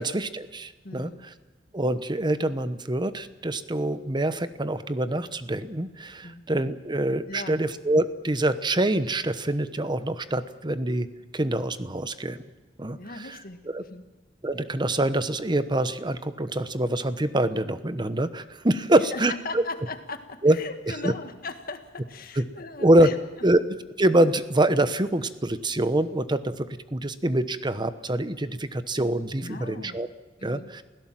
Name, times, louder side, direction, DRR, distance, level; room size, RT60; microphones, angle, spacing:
voice 1, 0.0-1.3 1.7-11.1 11.3-12.4 12.8-13.4 13.7-13.8 14.4-19.6 20.4-20.6 20.9-21.1 22.4-22.5 22.8-23.1 23.4-30.1 30.4-30.8, right 1 dB, 25° right, 12 dB, 1.0 m, -25 dB
voice 2, 0.8-1.3 6.2-6.5 7.3-7.6 12.9-14.1 18.9-23.2 29.4-30.0 30.4-30.7, left 3 dB, 55° left, 7 dB, 1.8 m, -39 dB
28.0 x 17.0 x 7.6 m, 1.3 s
head